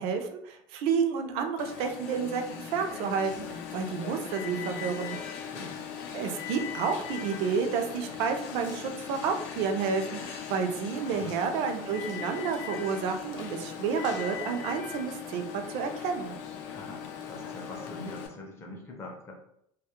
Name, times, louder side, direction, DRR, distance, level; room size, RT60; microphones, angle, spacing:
voice 1, 0.0-5.2 6.1-16.4, right 6 dB, 60° right, 6 dB, 0.4 m, -30 dB
Alarm, 1.6-18.3, left 8 dB, 80° left, 0.4 m, -39 dB
voice 2, 5.5-5.9 10.9-11.6 16.6-19.3, left 2 dB, 25° left, 1 dB, 0.5 m, -44 dB
2.2 x 2.0 x 2.8 m, 0.74 s
cardioid pair, 170°, 11 cm